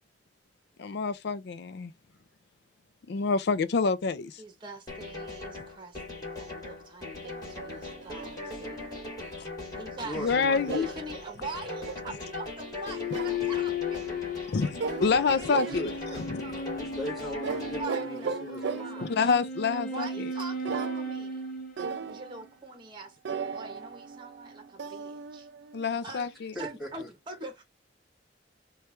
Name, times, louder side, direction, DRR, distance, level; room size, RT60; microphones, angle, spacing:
voice 1, 0.8-1.9 3.1-4.4 10.2-10.9 14.5-16.4 19.0-20.3 25.7-26.5, left 5 dB, 65° left, 0.4 m, -27 dB
voice 2, 4.4-8.9 9.7-10.2 10.7-14.3 15.3-16.8 17.8-19.1 19.7-21.4 22.1-23.2 23.4-25.5 25.9-26.3 26.6-27.6, right 3 dB, 25° right, 0.9 m, -43 dB
sound 1, 4.9-17.8, left 2 dB, 20° left, 2.4 m, -40 dB
sound 2, 7.2-9.5 10.7-12.1 13.1-13.6 14.8-15.3 15.5-16.2 17.4-19.1 20.6-21.4 21.8-22.4 23.2-25.9, right 5 dB, 70° right, 0.4 m, -37 dB
voice 3, 10.0-10.9 15.5-15.9 16.7-19.2 26.5-27.1, equal, ahead, 2.5 m, -39 dB
sound 3, 12.8-22.5, left 3 dB, 50° left, 1.0 m, -36 dB
4.3 x 2.4 x 3.1 m
head